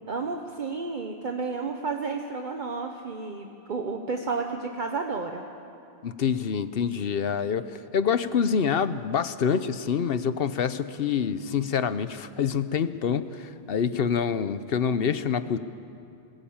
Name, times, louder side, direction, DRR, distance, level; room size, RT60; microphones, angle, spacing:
voice 1, 0.1-5.4, right 4 dB, 50° right, 3 dB, 1.1 m, -31 dB
voice 2, 6.0-15.6, left 7 dB, 65° left, 13 dB, 0.9 m, -26 dB
20.5 x 17.5 x 8.7 m, 2.6 s
omnidirectional pair, 1.1 m